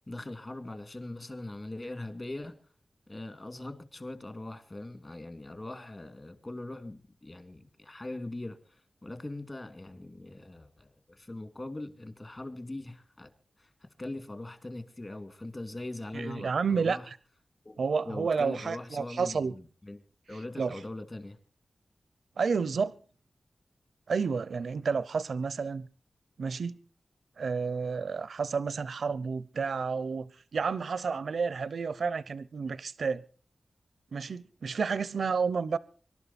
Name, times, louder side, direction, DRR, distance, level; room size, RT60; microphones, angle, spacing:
voice 1, 0.1-2.6 3.1-13.3 13.6-13.7 14.0-17.1 17.6-17.8 18.1-20.0 20.3-21.4, left 2 dB, 30° left, 2.3 m, -41 dB
voice 2, 16.1-17.2 17.8-19.5 20.6-20.8 22.4-22.9 24.1-25.9 26.4-26.7 27.4-33.2 34.1-35.8, right 5 dB, 90° right, 0.7 m, -30 dB
25.0 x 12.0 x 4.2 m
wide cardioid pair, 95°, 0 cm